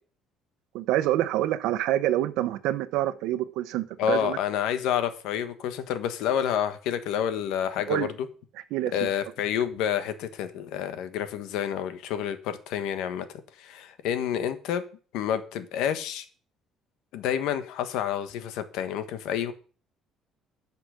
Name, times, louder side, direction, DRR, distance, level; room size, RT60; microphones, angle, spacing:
voice 1, 0.7-4.4 7.9-8.1 8.7-8.9, right 14 dB, 80° right, 13 dB, 1.0 m, -26 dB
voice 2, 4.0-8.3 8.9-14.8 15.1-16.2 17.1-19.5, left 9 dB, 80° left, 11 dB, 1.3 m, -29 dB
12.0 x 6.0 x 6.4 m, 0.40 s
cardioid pair, 170°, 0 cm